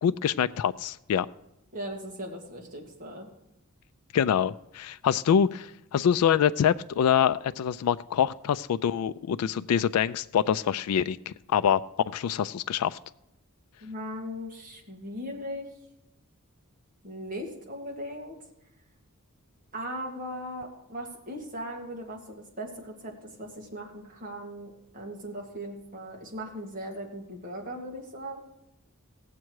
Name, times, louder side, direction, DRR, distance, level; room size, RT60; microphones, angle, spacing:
voice 1, 0.0-1.3 4.1-11.8 12.1-13.0, left 8 dB, 80° left, 13 dB, 0.3 m, -25 dB
voice 2, 1.7-3.3 13.8-15.7 17.0-18.4 19.7-28.4, equal, 40° right, 0 dB, 2.2 m, -38 dB
17.0 x 7.5 x 4.7 m, 0.89 s
head